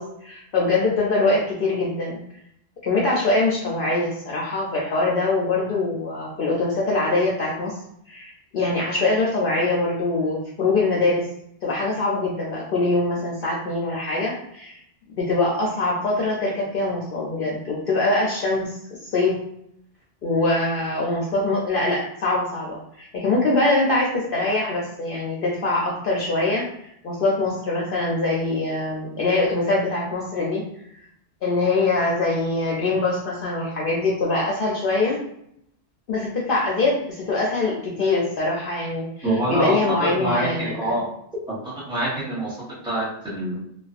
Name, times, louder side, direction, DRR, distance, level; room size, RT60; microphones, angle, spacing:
voice 1, 0.0-2.2 2.8-7.8 8.1-11.3 11.6-14.8 15.1-19.3 20.2-30.6 31.4-35.2 36.1-40.9, left 2 dB, 60° left, -4 dB, 0.6 m, -23 dB
voice 2, 39.2-41.1 41.5-43.6, right 1 dB, 5° right, -8 dB, 0.7 m, -26 dB
2.5 x 2.3 x 2.4 m, 0.73 s
omnidirectional pair, 1.2 m